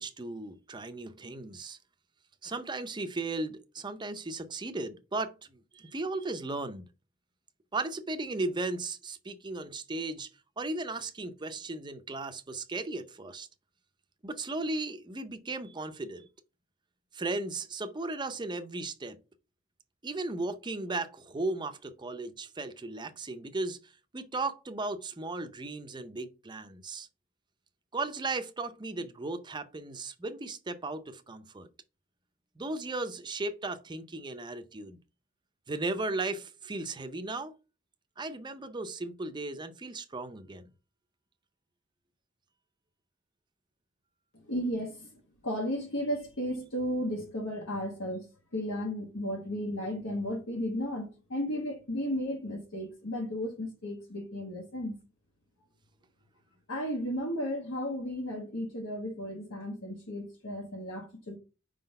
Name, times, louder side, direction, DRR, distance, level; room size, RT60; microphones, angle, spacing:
voice 1, 0.0-1.8 2.4-6.9 7.7-10.3 10.6-13.5 14.2-16.3 17.1-19.2 20.0-27.1 27.9-31.7 32.6-35.0 35.7-37.5 38.2-40.6, right 2 dB, 20° right, 0.6 m, -36 dB
voice 2, 44.3-48.3 48.5-55.0 56.7-61.4, equal, 70° left, 1.2 m, -34 dB
5.0 x 3.9 x 5.3 m
head